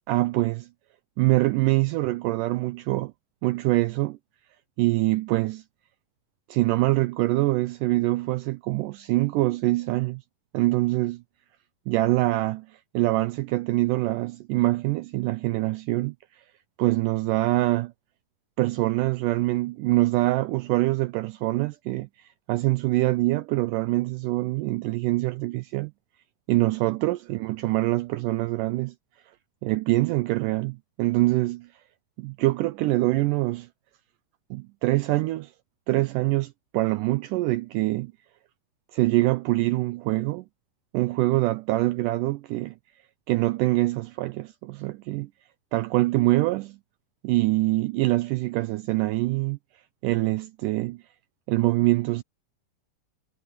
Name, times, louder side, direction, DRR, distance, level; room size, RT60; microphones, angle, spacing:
voice 1, 0.1-0.7 1.2-3.1 3.4-4.2 4.8-5.6 6.5-10.2 10.5-11.2 11.9-16.4 16.8-17.9 18.6-25.9 26.5-28.9 29.6-31.8 32.2-33.7 34.5-35.5 35.9-38.1 38.9-40.5 40.9-42.8 43.3-45.3 45.7-46.8 47.2-49.6 50.0-51.0 51.5-52.2, right 19 dB, 80° right, 1.9 m, -24 dB
omnidirectional pair, 4.2 m